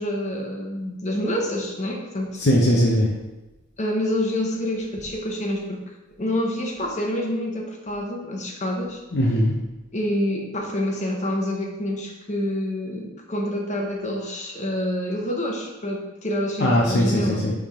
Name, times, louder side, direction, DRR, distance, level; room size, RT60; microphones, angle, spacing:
voice 1, 0.0-2.4 3.8-5.8 6.2-9.0 9.9-17.5, left 1 dB, 35° left, 0 dB, 1.2 m, -27 dB
voice 2, 2.4-3.1 9.1-9.5 16.6-17.5, equal, 55° left, -2 dB, 0.9 m, -19 dB
9.9 x 3.7 x 3.7 m, 1.1 s
head